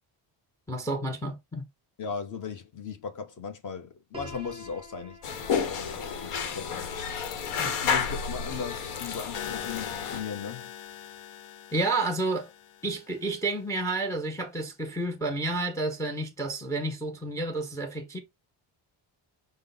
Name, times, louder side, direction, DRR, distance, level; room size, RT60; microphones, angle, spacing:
voice 1, 0.7-1.6 7.6-7.7 11.7-12.5 12.8-18.2, right 2 dB, 5° left, 0.4 m, -30 dB
voice 2, 2.0-6.7 7.8-10.7, left 6 dB, 40° left, 0.8 m, -37 dB
Piano, 4.1-10.0, left 1 dB, 10° right, 0.8 m, -50 dB
sound 1, 5.2-10.2, left 6 dB, 85° left, 1.0 m, -31 dB
sound 2, 9.3-13.4, left 10 dB, 65° left, 0.6 m, -42 dB
5.1 x 2.0 x 3.8 m
cardioid pair, 160°, 49 cm